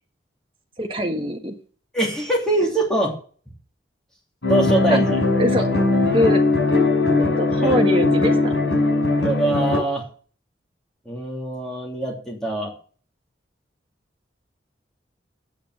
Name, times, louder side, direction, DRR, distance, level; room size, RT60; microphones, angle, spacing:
voice 1, 0.8-1.5 4.9-5.0 5.4-5.7 6.1-6.4 7.2-8.5, equal, 30° right, 3 dB, 1.6 m, -23 dB
voice 2, 1.9-3.1 4.5-5.2 7.6-7.7 9.2-10.0 11.0-12.7, right 2 dB, 5° left, -3 dB, 3.1 m, -23 dB
sound 1, 4.4-9.8, left 2 dB, 85° left, 5.3 m, -19 dB
8.9 x 6.5 x 7.7 m, 0.42 s
head